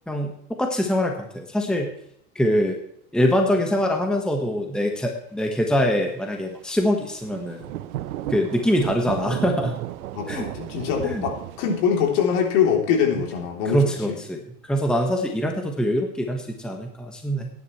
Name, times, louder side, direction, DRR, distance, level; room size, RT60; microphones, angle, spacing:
voice 1, 0.1-1.9 2.3-2.8 3.1-7.6 8.3-9.8 10.3-10.5 11.0-11.2 13.6-17.5, equal, ahead, 2 dB, 1.4 m, -24 dB
Thunder / Rain, 7.0-12.5, right 13 dB, 75° right, 0.9 m, -34 dB
voice 2, 10.1-14.2, left 7 dB, 60° left, 1 dB, 3.5 m, -23 dB
17.0 x 10.5 x 3.2 m, 0.71 s
hypercardioid pair, 115°, 44 cm